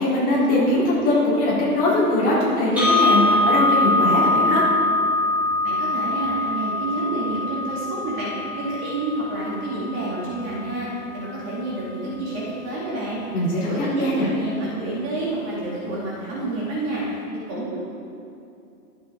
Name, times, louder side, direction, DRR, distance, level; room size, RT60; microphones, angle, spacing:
voice 1, 0.0-4.7 13.3-14.3, left 1 dB, 20° left, -8 dB, 3.7 m, -21 dB
sound 1, 2.8-10.8, left 2 dB, 5° right, 3.0 m, -23 dB
voice 2, 5.6-13.2 13.6-17.0 17.5-17.8, right 2 dB, 25° right, -7 dB, 2.7 m, -29 dB
23.5 x 8.1 x 3.8 m, 2.6 s
hypercardioid pair, 150°, 45 cm